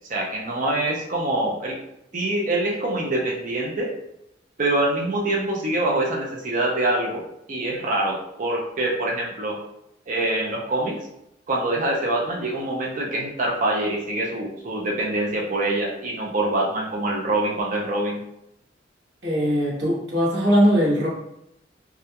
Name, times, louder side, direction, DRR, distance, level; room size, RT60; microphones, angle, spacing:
voice 1, 0.1-1.8 2.1-3.9 4.6-7.2 7.5-9.6 10.1-11.0 11.5-18.2, right 1 dB, 40° right, -2 dB, 0.4 m, -25 dB
voice 2, 19.2-21.1, equal, 60° right, -6 dB, 1.0 m, -20 dB
2.3 x 2.2 x 2.8 m, 0.81 s
head